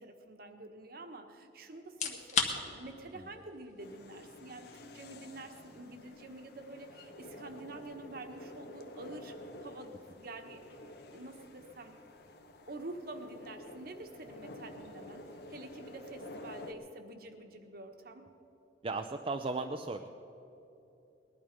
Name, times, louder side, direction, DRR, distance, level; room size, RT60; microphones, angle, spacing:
voice 1, 0.0-9.3 9.6-10.6 11.1-12.0 12.7-18.3, right 2 dB, 55° right, 6 dB, 1.3 m, -47 dB
sound 1, 1.8-16.7, left 6 dB, 45° left, 1.3 m, -44 dB
sound 2, 3.8-16.7, left 1 dB, 65° left, 1.1 m, -50 dB
voice 2, 18.8-20.1, right 3 dB, 30° right, 5 dB, 0.5 m, -36 dB
19.5 x 12.0 x 5.3 m, 3.0 s
head